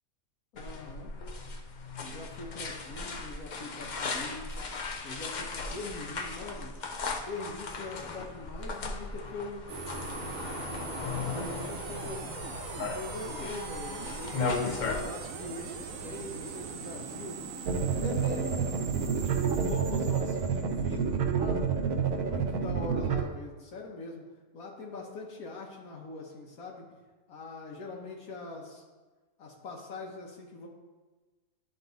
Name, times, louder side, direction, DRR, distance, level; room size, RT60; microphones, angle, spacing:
voice 1, 0.5-1.1 2.0-4.6 5.0-6.7 7.1-9.7 10.1-12.3 12.9-17.4 17.9-18.8 19.1-21.7 22.1-24.2 24.5-26.9 27.3-28.8 29.4-30.7, left 2 dB, 70° left, -1 dB, 1.4 m, -42 dB
sound 1, 0.6-15.0, left 4 dB, 55° left, 0.5 m, -37 dB
sound 2, 9.7-21.6, right 6 dB, 65° right, 1.0 m, -41 dB
sound 3, 17.7-23.2, right 6 dB, 80° right, 1.2 m, -29 dB
11.5 x 3.9 x 3.9 m, 1.3 s
omnidirectional pair, 1.6 m